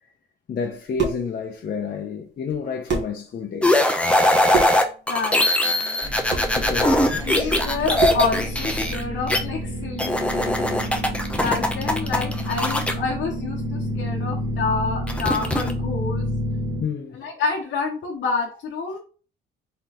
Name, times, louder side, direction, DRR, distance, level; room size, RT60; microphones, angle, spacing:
voice 1, 0.5-3.9 6.5-7.1 11.0-11.2 11.4-11.5 16.8-17.2, left 6 dB, 50° left, 0.7 m, -30 dB
sound 1, 0.7-1.3 2.5-2.6 2.9-3.2 4.5-4.9 6.3-6.6 8.0-8.3, right 5 dB, 60° right, 1.3 m, -26 dB
sound 2, 3.6-9.4 10.0-12.9 15.1-15.7, left 1 dB, 5° left, 0.6 m, -21 dB
voice 2, 5.1-6.0 6.3-7.0 7.2-10.7 11.3-16.3 17.1-19.0, left 4 dB, 70° left, 0.9 m, -28 dB
sound 3, 6.0-16.8, equal, 15° right, 1.5 m, -29 dB
3.9 x 3.8 x 2.9 m
cardioid pair, 90°, 20 cm